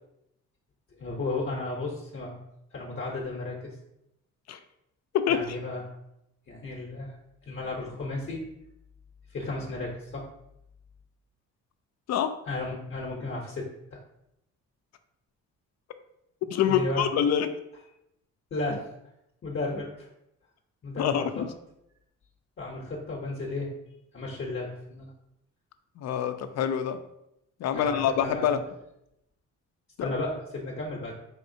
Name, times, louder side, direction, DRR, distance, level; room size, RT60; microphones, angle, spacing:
voice 1, 1.0-2.4 2.7-3.7 5.3-5.8 6.5-7.1 7.5-8.4 9.3-10.3 12.5-14.0 16.7-17.0 18.5-18.8 19.4-20.1 20.8-21.4 22.6-23.7 24.1-25.1 27.7-28.6 30.0-31.1, left 2 dB, 40° left, -2 dB, 0.8 m, -34 dB
voice 2, 5.1-5.4 12.1-12.4 16.5-17.5 21.0-21.5 26.0-27.0 27.6-28.6 30.0-30.1, left 9 dB, 60° left, 10 dB, 0.5 m, -26 dB
4.1 x 3.6 x 2.6 m, 0.82 s
cardioid pair, 90°, 30 cm